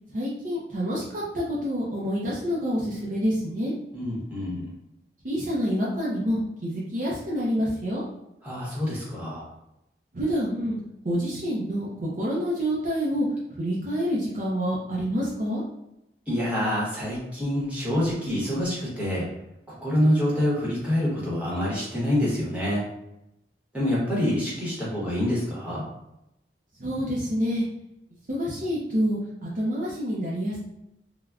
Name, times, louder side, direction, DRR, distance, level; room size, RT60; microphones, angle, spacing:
voice 1, 0.1-3.7 5.2-8.0 10.1-10.8 11.0-13.3 13.5-15.6 26.8-27.7 28.3-30.6, equal, 45° right, -6 dB, 0.5 m, -27 dB
voice 2, 3.9-4.7 8.4-9.5 16.3-19.3 19.7-22.8 23.7-25.8, left 1 dB, 10° right, -7 dB, 0.9 m, -26 dB
3.3 x 2.1 x 2.3 m, 0.86 s
head